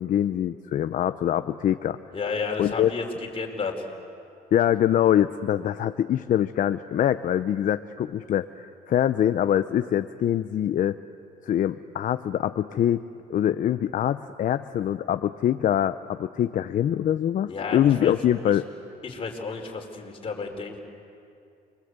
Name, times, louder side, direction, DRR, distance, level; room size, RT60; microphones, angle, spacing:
voice 1, 0.0-2.0 2.6-2.9 4.5-11.0 11.4-13.0 13.3-18.7, left 10 dB, 50° left, 11 dB, 0.7 m, -24 dB
voice 2, 2.1-3.1 3.3-3.8 17.5-18.1 19.0-20.8, left 4 dB, 35° left, 2 dB, 4.5 m, -32 dB
29.0 x 23.5 x 8.2 m, 2.5 s
cardioid pair, 110°, 17 cm